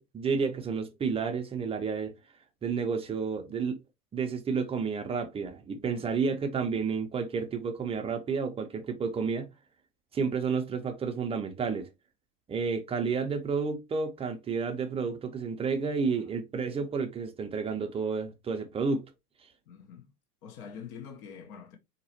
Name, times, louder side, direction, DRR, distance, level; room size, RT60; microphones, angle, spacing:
voice 1, 0.0-2.1 2.6-3.8 4.1-9.5 10.1-11.9 12.5-19.0, right 5 dB, 15° right, 0.4 m, -31 dB
voice 2, 19.7-20.1 20.4-21.8, left 7 dB, 60° left, 1.0 m, -45 dB
3.9 x 2.8 x 2.8 m
hypercardioid pair, 90°, 48 cm